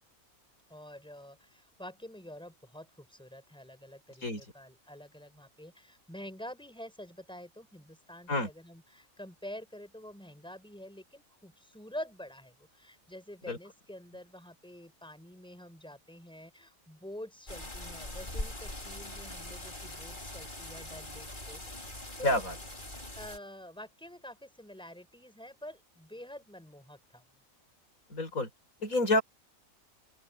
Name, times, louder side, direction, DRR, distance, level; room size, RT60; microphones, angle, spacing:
voice 1, 0.7-22.4 23.2-27.2, left 1 dB, 5° left, 5.7 m, -47 dB
sound 1, 17.5-23.4, left 1 dB, 35° left, 4.6 m, -42 dB
voice 2, 22.2-22.5 28.1-28.5 28.8-29.2, left 1 dB, 90° left, 6.4 m, -28 dB
open air
omnidirectional pair, 1.4 m